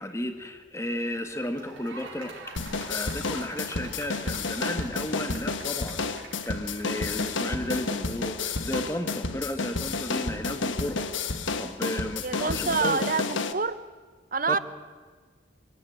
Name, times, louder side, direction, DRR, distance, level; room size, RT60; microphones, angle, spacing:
voice 1, 0.0-2.6 2.9-11.1 11.6-13.0 14.5-14.6, left 1 dB, 15° left, 6 dB, 1.7 m, -34 dB
sound 1, 1.3-7.9, right 4 dB, 75° right, 4.5 m, -46 dB
sound 2, 2.6-13.5, left 3 dB, 75° left, 1.3 m, -31 dB
voice 2, 12.2-13.8 14.3-14.6, right 4 dB, 45° right, 14 dB, 0.9 m, -27 dB
25.5 x 16.5 x 9.3 m, 1.5 s
head